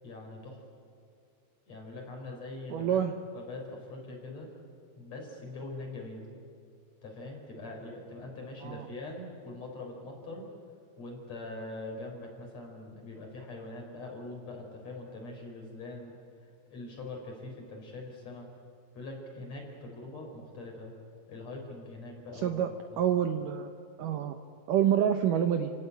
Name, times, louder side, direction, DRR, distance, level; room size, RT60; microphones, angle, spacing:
voice 1, 0.0-0.6 1.7-3.0 3.3-4.5 5.0-6.3 7.0-10.4 11.0-16.1 16.7-18.5 18.9-20.9 21.3-22.6 22.9-23.0 24.0-24.1, left 2 dB, 40° left, 1 dB, 5.3 m, -43 dB
voice 2, 2.7-3.1 8.6-8.9 22.4-22.7 23.0-23.7 24.0-24.4 24.7-25.7, right 9 dB, 70° right, 7 dB, 2.1 m, -27 dB
29.5 x 17.0 x 8.3 m, 2.5 s
omnidirectional pair, 4.7 m